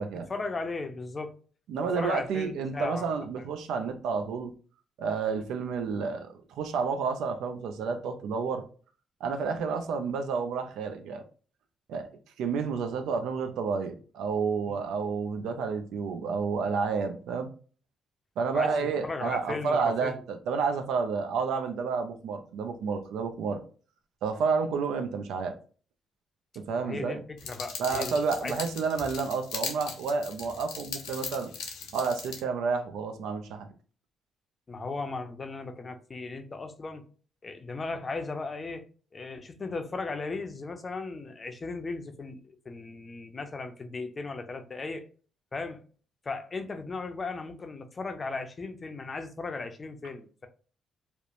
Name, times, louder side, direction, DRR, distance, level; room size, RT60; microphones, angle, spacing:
voice 1, 0.3-1.3 2.0-3.4 14.7-14.8 18.5-20.2 26.8-28.1 28.4-28.6 34.7-37.1 37.4-38.9 39.1-45.0 45.5-45.8 46.2-50.5, left 3 dB, 30° left, 0.5 m, -36 dB
voice 2, 1.7-4.5 5.0-8.6 9.2-11.2 11.9-12.1 12.4-17.5 18.4-23.6 24.2-25.6 26.6-27.2 27.8-31.5 31.9-33.7, right 5 dB, 85° right, 0.4 m, -30 dB
sound 1, 27.4-32.4, left 6 dB, 90° left, 0.6 m, -39 dB
2.9 x 2.0 x 2.5 m
cardioid pair, 90°, 0 cm